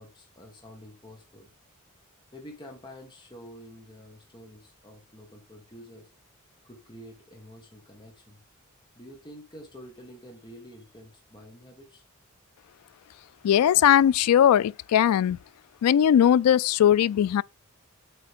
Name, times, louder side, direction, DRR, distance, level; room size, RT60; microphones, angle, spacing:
voice 1, 0.0-1.5 2.3-6.1 6.6-8.4 8.9-12.0, equal, 20° left, 1.7 m, -48 dB
voice 2, 13.4-15.4 15.8-17.4, left 10 dB, 85° left, 0.3 m, -19 dB
8.0 x 4.3 x 3.6 m
head